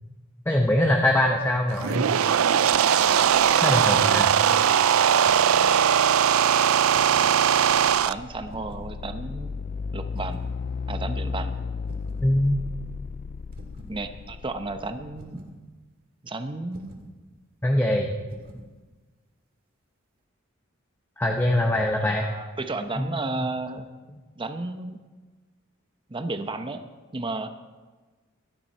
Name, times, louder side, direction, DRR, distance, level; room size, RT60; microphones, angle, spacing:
voice 1, 0.5-2.1 3.6-4.4 12.2-12.6 17.6-18.1 21.2-22.2 23.0-23.2, left 1 dB, 10° left, 1 dB, 0.9 m, -23 dB
sound 1, 1.7-8.1, right 8 dB, 80° right, 0.4 m, -20 dB
voice 2, 4.7-5.0 7.8-9.6 9.9-10.5 10.9-11.5 13.9-15.4 16.2-16.9 21.9-23.9 24.4-25.0 26.1-26.9 27.1-27.5, right 2 dB, 25° right, 8 dB, 0.8 m, -33 dB
sound 2, 5.3-5.8 6.9-7.4 8.5-8.9 10.2-10.5 11.9-12.3 13.5-14.0 15.2-15.6 16.7-17.1 18.3-18.7, equal, 45° right, 2.1 m, -46 dB
sound 3, 7.6-15.3, left 4 dB, 45° left, 0.3 m, -34 dB
16.5 x 12.5 x 4.4 m, 1.3 s
head